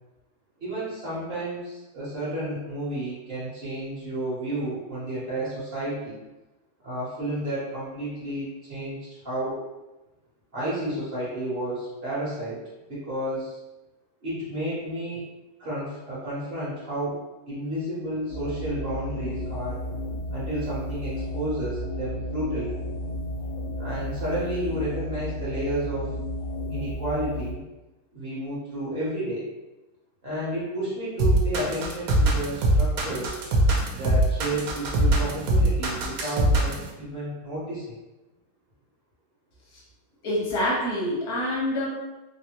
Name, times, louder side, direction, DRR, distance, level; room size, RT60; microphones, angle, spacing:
voice 1, 0.6-6.2 6.8-9.6 10.5-12.6 12.9-13.6 14.2-15.2 15.6-17.2 17.5-19.8 20.3-22.8 23.8-26.1 26.7-27.6 28.1-29.5 30.2-33.4 33.9-37.9, right 1 dB, 45° right, -9 dB, 1.0 m, -31 dB
sound 1, 18.3-27.5, left 1 dB, 65° left, 0.7 m, -32 dB
sound 2, 31.2-36.9, right 1 dB, 80° right, 1.1 m, -21 dB
voice 2, 40.2-41.9, left 1 dB, 85° left, -6 dB, 1.4 m, -26 dB
3.4 x 2.0 x 2.8 m, 1.0 s
omnidirectional pair, 1.5 m